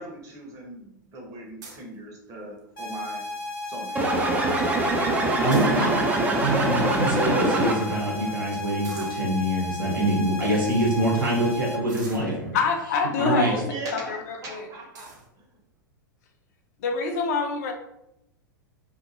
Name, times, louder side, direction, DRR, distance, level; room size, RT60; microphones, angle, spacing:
voice 1, 0.0-3.2 3.6-4.0 13.4-15.5, right 1 dB, 30° right, -1 dB, 0.9 m, -39 dB
sound 1, 1.6-1.9 2.6-2.9 3.3-3.4 3.6-4.0 5.3-6.2 6.9-7.0 7.2-7.4 8.8-9.3 10.0-10.1 10.6-10.8 11.9-12.7 13.5-13.8 14.3-14.4 14.9-15.3, right 3 dB, 60° right, 0.7 m, -44 dB
sound 2, 2.8-11.8, left 2 dB, 80° left, 0.8 m, -34 dB
sound 3, 4.0-8.1, right 2 dB, 15° right, 0.4 m, -24 dB
voice 2, 5.4-5.9 6.4-12.5 13.2-13.5, right 1 dB, 80° right, -4 dB, 1.2 m, -25 dB
voice 3, 12.5-13.6 13.9-14.7 16.8-17.7, left 4 dB, 50° left, 4 dB, 0.6 m, -26 dB
2.7 x 2.5 x 2.6 m, 0.81 s
figure-of-eight pair, 95°, 11 cm